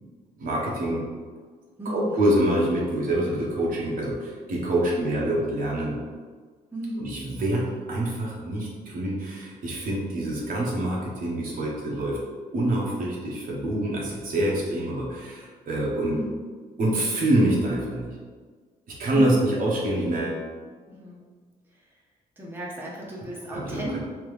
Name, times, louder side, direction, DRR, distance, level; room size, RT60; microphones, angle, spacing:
voice 1, 0.4-1.0 1.9-6.0 7.0-12.2 12.5-16.2 16.8-18.1 19.0-20.4 23.5-24.0, right 1 dB, 65° right, -4 dB, 1.0 m, -26 dB
voice 2, 1.8-2.4 4.9-5.2 6.7-7.2 16.1-16.4 19.1-19.6 20.9-21.3 21.7-22.0 22.4-24.0, right 1 dB, 15° right, -5 dB, 0.8 m, -35 dB
3.5 x 3.0 x 3.2 m, 1.5 s
cardioid pair, 110°, 15 cm